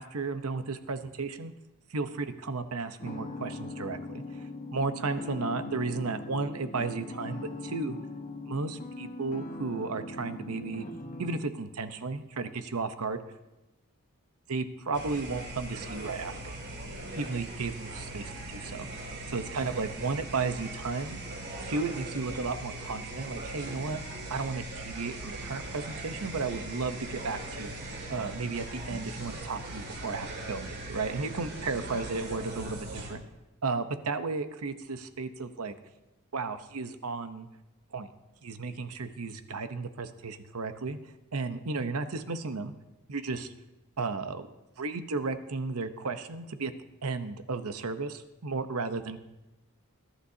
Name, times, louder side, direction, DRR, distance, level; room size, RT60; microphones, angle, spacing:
voice 1, 0.0-1.5 1.9-4.2 4.7-8.0 8.5-10.9 11.2-13.2 14.5-16.5 17.2-18.9 19.3-21.2 21.7-24.0 24.3-27.7 28.1-33.2 33.6-35.7 36.3-37.5 37.9-38.1 38.4-41.0 41.3-42.7 43.1-43.5 44.0-44.5 44.8-46.7 47.0-49.2, right 4 dB, 85° right, 10 dB, 0.9 m, -34 dB
sound 1, 3.0-11.4, left 2 dB, 35° left, 1.2 m, -40 dB
sound 2, 14.9-33.2, right 2 dB, 50° right, 2.4 m, -40 dB
21.0 x 11.5 x 2.8 m, 1.0 s
head